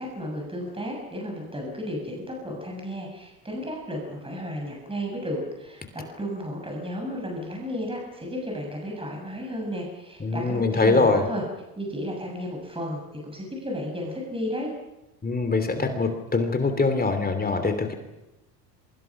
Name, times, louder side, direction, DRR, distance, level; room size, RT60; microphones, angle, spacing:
voice 1, 0.0-11.4 11.8-14.7, equal, 10° right, 0 dB, 7.1 m, -33 dB
voice 2, 10.2-11.2 15.2-17.9, left 3 dB, 20° left, 7 dB, 3.2 m, -23 dB
27.0 x 24.5 x 6.1 m, 0.96 s
hypercardioid pair, 90°, 49 cm